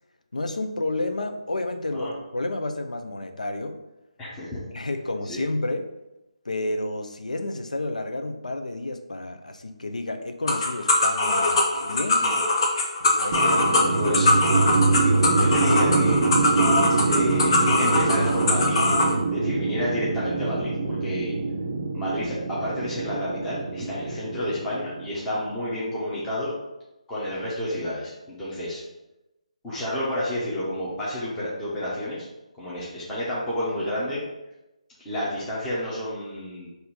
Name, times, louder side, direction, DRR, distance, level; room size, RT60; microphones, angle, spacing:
voice 1, 0.3-3.8 4.7-5.9 6.4-12.3 13.0-14.2, left 2 dB, 90° left, 6 dB, 0.6 m, -31 dB
voice 2, 4.2-4.6 5.3-5.4 12.2-12.4 14.0-14.3 15.0-16.3 17.0-18.8 19.3-21.3 21.9-26.5 27.1-28.8 29.6-32.3 32.6-34.2 35.0-36.7, left 1 dB, 10° left, -9 dB, 1.0 m, -30 dB
sound 1, 10.5-19.1, left 2 dB, 45° left, 0.7 m, -22 dB
sound 2, 13.3-25.5, right 4 dB, 40° right, 0.5 m, -25 dB
4.0 x 2.7 x 4.3 m, 0.96 s
figure-of-eight pair, 155°, 4 cm